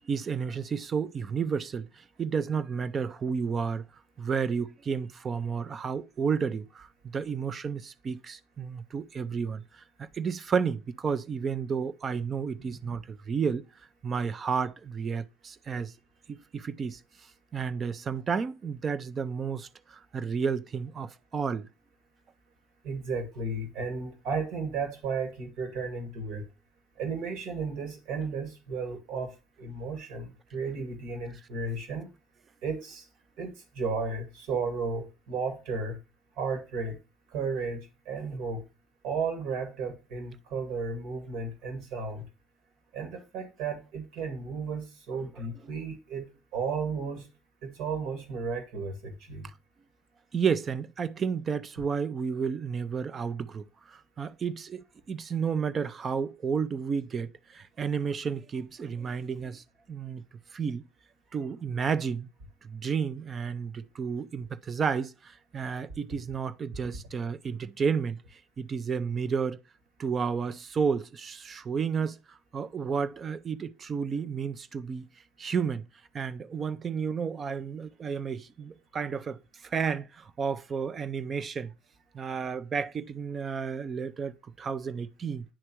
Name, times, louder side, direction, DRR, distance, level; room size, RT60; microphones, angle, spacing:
voice 1, 0.0-3.8 4.2-13.7 14.0-15.9 16.3-17.0 17.5-21.7 50.3-60.2 60.5-60.8 61.3-62.3 62.6-69.6 70.0-75.1 75.4-75.8 76.1-81.7 82.1-85.4, right 6 dB, 35° right, 0.6 m, -32 dB
voice 2, 12.6-13.0 22.8-26.5 27.0-32.1 32.6-33.0 33.4-36.0 36.4-37.0 37.3-38.6 39.0-42.3 42.9-47.3 47.6-49.5, right 4 dB, 65° right, 1.9 m, -34 dB
9.9 x 3.3 x 2.9 m
hypercardioid pair, 75°, 0 cm